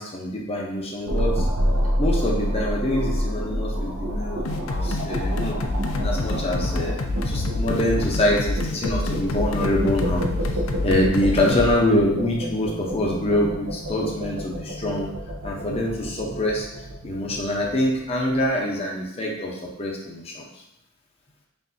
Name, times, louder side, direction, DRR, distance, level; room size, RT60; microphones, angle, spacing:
voice 1, 0.0-1.5 2.0-5.6 6.0-10.2 10.8-15.1 15.4-16.7 17.0-20.5, left 1 dB, 30° left, -2 dB, 0.6 m, -25 dB
sound 1, 1.1-18.3, equal, 85° right, 0.7 m, -29 dB
sound 2, 4.5-11.7, left 2 dB, 75° left, 0.4 m, -27 dB
5.4 x 2.6 x 2.6 m, 0.81 s
head